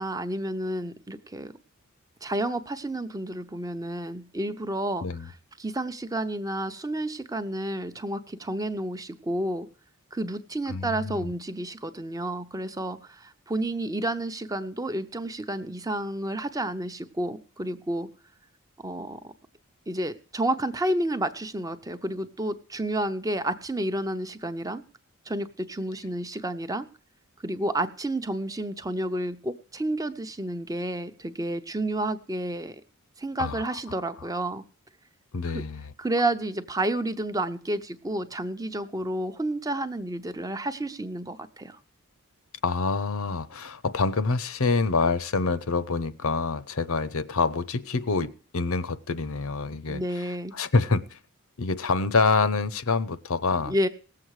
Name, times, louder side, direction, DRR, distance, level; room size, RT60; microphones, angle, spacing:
voice 1, 0.0-1.5 2.2-5.3 5.6-9.7 10.1-18.1 18.8-19.3 19.9-24.8 25.3-26.9 27.4-32.8 33.2-34.6 35.5-35.6 36.0-41.8 49.9-50.5 53.7-53.9, right 1 dB, 15° right, 9 dB, 0.8 m, -30 dB
voice 2, 10.7-11.3 33.4-33.8 35.3-35.9 42.6-51.2 51.6-53.9, left 4 dB, 70° left, 15 dB, 0.8 m, -26 dB
18.5 x 7.8 x 4.8 m, 0.40 s
head